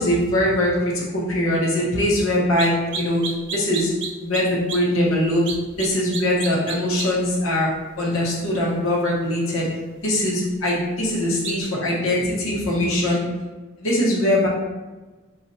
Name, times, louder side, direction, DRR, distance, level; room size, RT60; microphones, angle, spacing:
voice 1, 0.0-3.3 3.5-3.9 4.2-5.4 5.8-7.7 8.0-9.7 10.0-13.2 13.8-14.5, left 1 dB, 80° left, -4 dB, 1.0 m, -21 dB
sound 1, 2.6-2.7 2.9-4.4 4.7-4.8 5.5-5.9 6.1-7.1 11.4-11.5, right 6 dB, 60° right, 0.5 m, -29 dB
4.2 x 2.4 x 2.6 m, 1.2 s
head